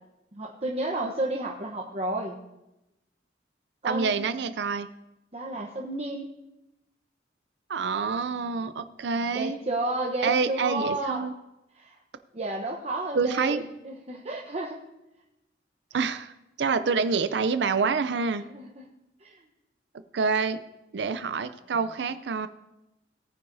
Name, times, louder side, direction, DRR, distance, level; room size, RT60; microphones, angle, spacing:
voice 1, 0.3-2.4 3.8-4.2 5.3-6.3 9.3-11.2 11.7-12.0 12.3-14.8 18.4-18.9 19.2-19.3, right 2 dB, 35° right, -1 dB, 0.9 m, -31 dB
voice 2, 3.8-4.9 7.7-9.6 10.2-11.3 13.1-13.6 15.9-16.3 16.6-18.4 20.1-20.6 20.9-22.5, right 5 dB, 65° right, 11 dB, 0.4 m, -27 dB
18.0 x 9.5 x 2.7 m, 0.93 s
head